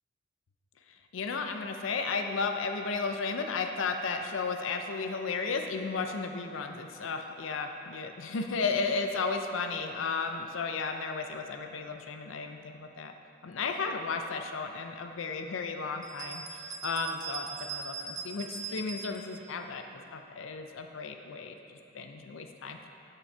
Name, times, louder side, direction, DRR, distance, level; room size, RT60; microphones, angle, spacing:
voice 1, 1.1-13.1 13.4-19.8 20.1-22.9, left 4 dB, 80° left, 5 dB, 0.5 m, -34 dB
sound 1, 16.0-19.4, right 5 dB, 20° right, 0.4 m, -40 dB
6.9 x 5.8 x 4.4 m, 2.8 s
head